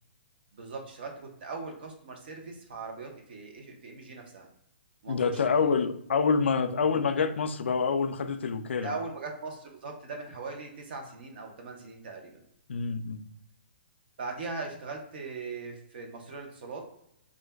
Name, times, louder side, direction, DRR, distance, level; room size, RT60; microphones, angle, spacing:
voice 1, 0.5-4.5 5.0-5.7 8.8-12.4 14.2-16.8, right 3 dB, 60° right, 0.8 m, -40 dB
voice 2, 5.1-8.9 12.7-13.2, left 5 dB, 90° left, 0.3 m, -27 dB
2.5 x 2.2 x 3.3 m
hypercardioid pair, 155°, 6 cm